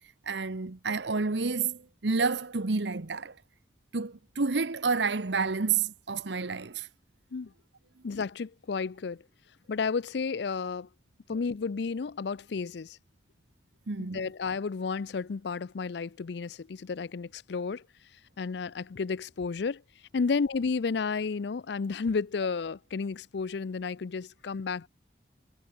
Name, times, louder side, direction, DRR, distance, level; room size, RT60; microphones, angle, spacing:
voice 1, 0.3-3.4 3.9-6.9 13.9-14.3, right 4 dB, 70° right, 1.0 m, -29 dB
voice 2, 8.0-9.2 9.7-10.9 11.3-13.0 14.0-17.8 18.4-19.8 20.1-24.9, left 5 dB, 65° left, 0.5 m, -32 dB
head